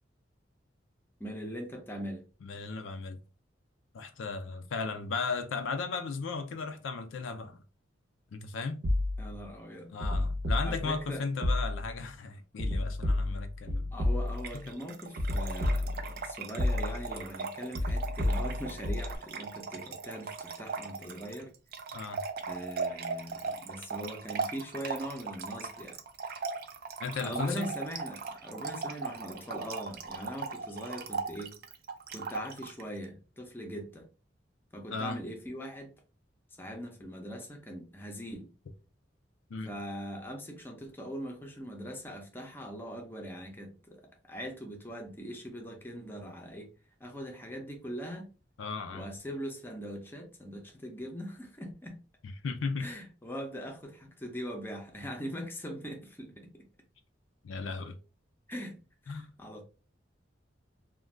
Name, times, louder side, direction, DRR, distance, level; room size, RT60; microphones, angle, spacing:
voice 1, 1.2-2.2 9.2-9.9 10.7-11.2 13.9-21.5 22.5-26.0 27.2-31.5 32.1-34.1 34.7-35.9 36.6-38.5 39.7-46.7 47.0-48.3 48.9-52.0 52.8-56.7 58.5-59.6, equal, 10° left, 0.5 m, -41 dB
voice 2, 2.4-3.2 3.9-7.6 8.3-8.8 9.9-13.9 14.5-14.7 21.9-22.2 27.0-27.7 34.9-35.2 39.5-39.7 48.6-49.1 52.2-52.9 57.4-58.0 59.1-59.3, left 4 dB, 90° left, 0.4 m, -36 dB
sound 1, 8.8-9.5 10.0-11.1 11.4-12.0 12.6-14.6 15.2-16.2 16.6-17.2 17.7-19.2, left 1 dB, 80° right, 0.8 m, -31 dB
Trickle dribble / Fill (with liquid), 14.3-32.8, right 4 dB, 50° right, 0.4 m, -38 dB
2.5 x 2.2 x 3.1 m
head